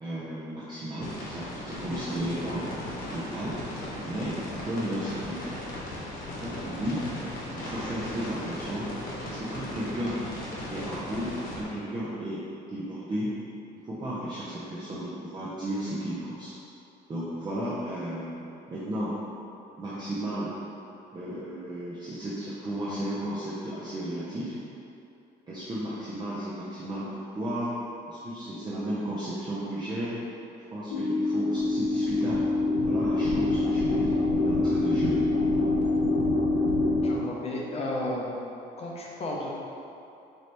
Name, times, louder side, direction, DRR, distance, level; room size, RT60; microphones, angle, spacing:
voice 1, 0.0-2.6 3.1-3.6 4.1-5.4 6.4-7.0 7.5-8.9 9.2-10.2 10.7-12.4 12.7-13.3 13.8-16.5 17.1-18.3 18.7-19.2 19.8-20.5 21.1-24.6 25.5-27.7 28.1-30.2 30.7-32.4 32.8-35.2, right 1 dB, 25° right, -8 dB, 0.6 m, -34 dB
sound 1, 1.0-11.6, left 1 dB, 55° left, 1.1 m, -37 dB
sound 2, 30.9-37.2, left 2 dB, 85° left, 0.6 m, -25 dB
voice 2, 37.0-38.4 38.8-39.5, left 1 dB, 40° left, -3 dB, 0.7 m, -33 dB
4.2 x 2.8 x 3.3 m, 2.7 s
cardioid pair, 110°, 17 cm